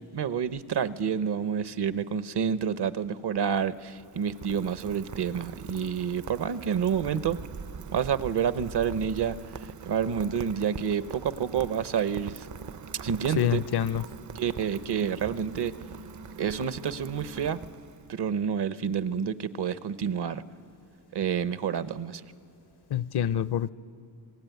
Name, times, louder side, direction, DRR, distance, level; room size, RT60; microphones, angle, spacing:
voice 1, 0.1-7.4 7.9-9.4 9.6-12.5 13.0-13.7 14.3-15.7 16.4-17.6 18.1-20.4 21.1-22.2, right 7 dB, 60° right, 13 dB, 0.9 m, -29 dB
Rain, 3.5-18.3, right 6 dB, 40° right, 0.6 m, -43 dB
voice 2, 13.4-14.0 22.9-23.7, left 10 dB, 60° left, 17 dB, 0.6 m, -26 dB
27.5 x 20.0 x 9.3 m, 2.9 s
cardioid pair, 95°, 45 cm